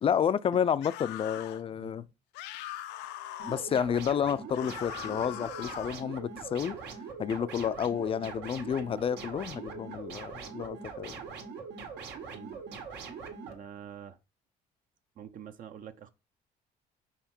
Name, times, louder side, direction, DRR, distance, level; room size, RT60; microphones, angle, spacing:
voice 1, 0.0-2.0 3.5-6.8 7.2-11.2, left 8 dB, 35° left, 0.4 m, -30 dB
sound 1, 0.8-1.6 2.3-3.7 4.5-6.0, left 12 dB, 90° left, 0.5 m, -41 dB
voice 2, 1.7-2.1 12.3-12.6 13.4-14.2 15.2-16.1, right 9 dB, 55° right, 0.6 m, -46 dB
sound 2, 3.4-13.5, right 5 dB, 85° right, 1.9 m, -42 dB
5.7 x 4.5 x 4.4 m
cardioid pair, 110°, 17 cm